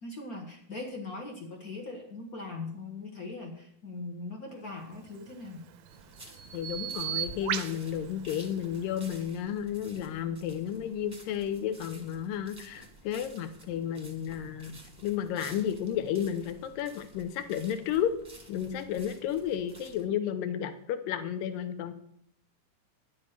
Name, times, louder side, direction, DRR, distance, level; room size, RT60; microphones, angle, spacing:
voice 1, 0.0-5.7, left 3 dB, 50° left, 2 dB, 1.0 m, -40 dB
Bird vocalization bird call bird song, 5.0-9.2, right 12 dB, 85° right, 2.4 m, -38 dB
sound 1, 5.9-20.0, right 2 dB, 10° right, 1.0 m, -52 dB
voice 2, 6.5-18.1 18.5-21.9, left 9 dB, 85° left, 10 dB, 2.5 m, -32 dB
11.0 x 7.3 x 6.6 m, 0.66 s
omnidirectional pair, 3.9 m